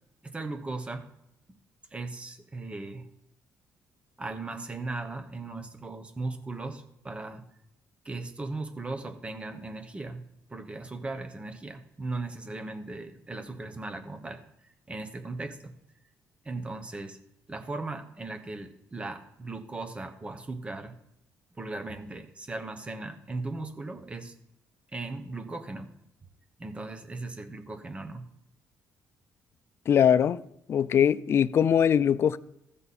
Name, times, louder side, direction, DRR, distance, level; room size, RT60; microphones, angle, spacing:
voice 1, 0.2-1.1 1.9-3.1 4.2-7.5 8.0-10.2 10.5-15.7 16.4-17.2 17.5-20.9 21.6-24.3 24.9-25.9 26.6-28.3, right 2 dB, 20° right, 1.1 m, -37 dB
voice 2, 29.9-30.4 30.7-32.4, left 8 dB, 45° left, 0.4 m, -22 dB
15.0 x 5.4 x 4.2 m
cardioid pair, 120°, 6 cm